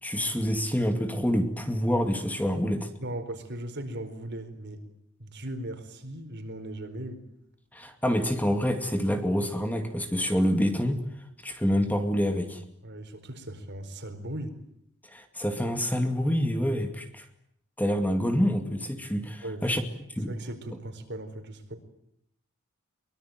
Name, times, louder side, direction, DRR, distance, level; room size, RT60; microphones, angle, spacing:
voice 1, 0.0-2.9 7.7-11.0 11.4-12.6 15.1-17.2 17.8-19.8 20.2-20.3, equal, 10° left, 6 dB, 2.3 m, -27 dB
voice 2, 3.0-4.8 5.2-7.2 12.8-14.6 19.4-19.6 20.3-21.8, right 1 dB, 55° right, 7 dB, 4.5 m, -38 dB
23.5 x 23.0 x 9.3 m, 0.76 s
head